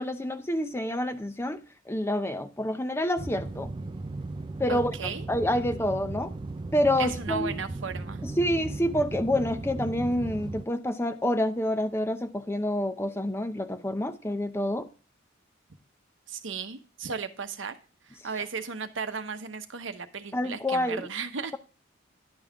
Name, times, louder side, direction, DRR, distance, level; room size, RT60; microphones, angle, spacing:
voice 1, 0.0-3.7 4.6-6.3 6.7-7.5 8.2-14.9 20.3-21.1, left 1 dB, 10° left, 0.6 m, -28 dB
sound 1, 3.2-10.6, right 2 dB, 25° right, 0.3 m, -36 dB
voice 2, 4.7-5.7 7.0-8.2 16.3-17.8 18.0-21.6, right 5 dB, 65° right, 0.9 m, -35 dB
10.5 x 5.5 x 3.5 m
head